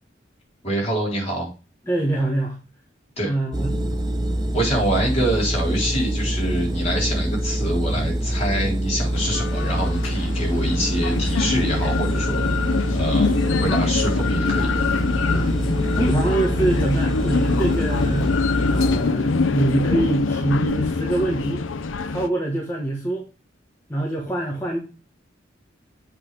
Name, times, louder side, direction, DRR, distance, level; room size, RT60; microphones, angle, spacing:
voice 1, 0.6-1.5 3.2-3.3 4.5-14.7, right 1 dB, 35° left, -3 dB, 3.8 m, -25 dB
voice 2, 1.8-2.6 3.2-3.7 15.3-15.5 15.9-18.3 18.7-21.6 22.1-23.2 23.9-24.8, right 1 dB, 15° left, -1 dB, 1.3 m, -24 dB
sound 1, 3.5-19.0, right 1 dB, 20° right, 0.7 m, -25 dB
sound 2, 9.1-22.3, left 4 dB, 85° left, 0.6 m, -24 dB
7.8 x 3.9 x 5.0 m, 0.33 s
head